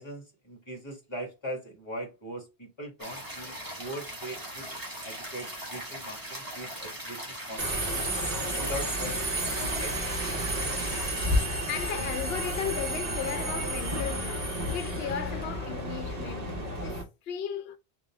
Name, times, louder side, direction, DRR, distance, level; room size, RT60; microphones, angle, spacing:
voice 1, 0.0-8.1 8.6-9.2 9.6-10.0, equal, 25° left, 1.6 m, -40 dB
sound 1, 3.0-11.5, right 1 dB, 20° right, 1.3 m, -40 dB
Subway metro underground, 7.6-17.0, equal, 40° right, 1.1 m, -31 dB
voice 2, 11.4-17.8, left 8 dB, 70° left, 0.9 m, -36 dB
sound 2, 11.5-14.3, right 4 dB, 80° right, 1.1 m, -46 dB
3.9 x 2.7 x 3.4 m
omnidirectional pair, 1.1 m